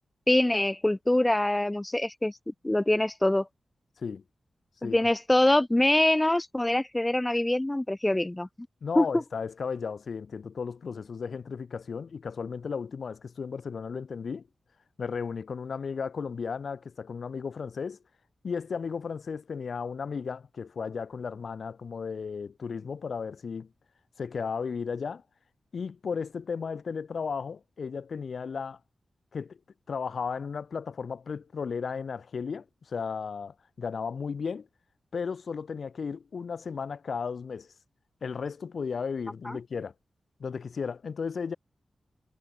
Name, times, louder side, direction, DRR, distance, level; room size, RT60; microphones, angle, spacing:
voice 1, 0.3-2.3 2.6-3.5 4.8-8.5 9.0-9.1 39.5-39.6, left 1 dB, 15° left, 0.6 m, -24 dB
voice 2, 8.8-14.4 15.0-18.0 18.4-23.7 24.2-25.2 25.7-28.8 29.3-29.6 29.9-34.7 35.1-37.7 38.2-39.9 40.4-41.6, left 5 dB, 70° left, 0.8 m, -34 dB
cardioid pair, 55°, 0 cm